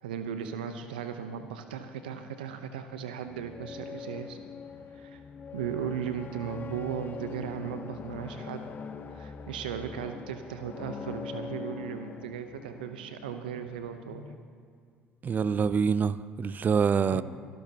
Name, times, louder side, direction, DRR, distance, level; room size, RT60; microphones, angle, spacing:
voice 1, 0.0-4.4 4.9-5.2 5.5-8.6 9.1-14.3 17.1-17.2, right 8 dB, 85° right, 0.8 m, -37 dB
sound 1, 2.7-14.4, left 6 dB, 40° left, 0.9 m, -43 dB
voice 2, 15.2-17.2, right 6 dB, 40° right, 0.6 m, -26 dB
27.5 x 12.5 x 2.9 m
hypercardioid pair, 65°, 5 cm